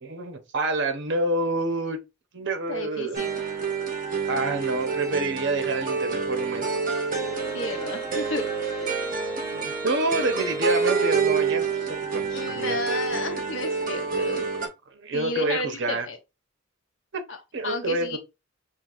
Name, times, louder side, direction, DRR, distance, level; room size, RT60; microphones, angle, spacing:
voice 1, 0.0-2.0 2.3-3.2 4.3-6.8 9.5-12.8 14.9-16.1 17.1-17.2 17.5-18.2, right 2 dB, 60° right, 0.8 m, -28 dB
voice 2, 2.7-3.3 7.5-8.5 8.8-9.1 12.3-14.5 15.1-16.2 17.3-17.4 17.6-18.2, left 2 dB, 70° left, 0.9 m, -32 dB
sound 1, 3.1-14.7, right 5 dB, 45° right, 1.1 m, -28 dB
5.8 x 2.5 x 2.5 m
head